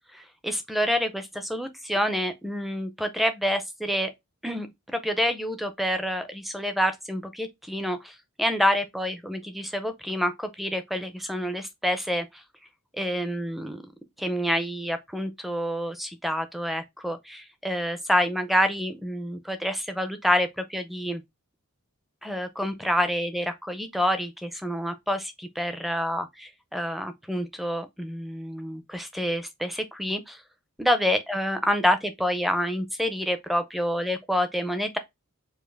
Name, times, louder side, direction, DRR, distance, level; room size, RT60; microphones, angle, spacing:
voice 1, 0.1-4.1 4.4-12.4 13.0-13.8 14.2-21.2 22.2-30.4 30.8-35.0, equal, ahead, 0.4 m, -28 dB
4.6 x 2.5 x 3.3 m
head